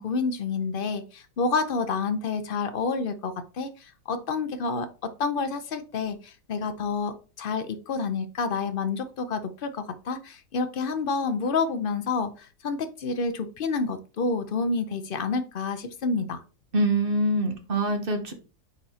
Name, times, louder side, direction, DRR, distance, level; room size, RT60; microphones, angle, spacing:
voice 1, 0.0-16.4, left 4 dB, 65° left, 10 dB, 0.5 m, -29 dB
voice 2, 16.7-18.3, right 1 dB, 40° right, 5 dB, 1.0 m, -24 dB
8.6 x 4.1 x 2.8 m, 0.35 s
omnidirectional pair, 1.7 m